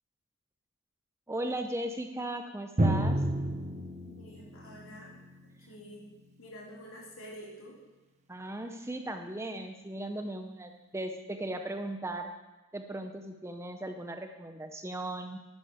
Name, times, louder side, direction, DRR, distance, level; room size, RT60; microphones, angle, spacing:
voice 1, 1.3-3.2 8.3-12.3 12.7-15.4, right 1 dB, 10° right, 6 dB, 0.6 m, -37 dB
Drum, 2.8-6.3, right 1 dB, 30° right, 0.9 m, -31 dB
voice 2, 4.1-6.1 6.4-7.8, equal, 70° left, -4 dB, 3.4 m, -48 dB
11.5 x 10.0 x 4.9 m, 1.1 s
head